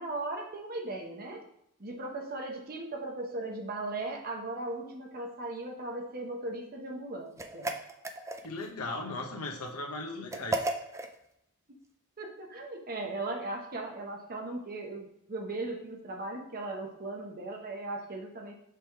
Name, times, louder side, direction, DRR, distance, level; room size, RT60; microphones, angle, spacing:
voice 1, 0.0-1.5 1.8-7.7 12.2-18.5, right 2 dB, 45° right, 2 dB, 1.0 m, -38 dB
sound 1, 7.4-8.7 10.3-11.1, right 2 dB, 15° right, 0.4 m, -34 dB
voice 2, 8.4-10.7, left 2 dB, 80° left, 1 dB, 1.1 m, -37 dB
6.0 x 3.5 x 4.6 m, 0.78 s
head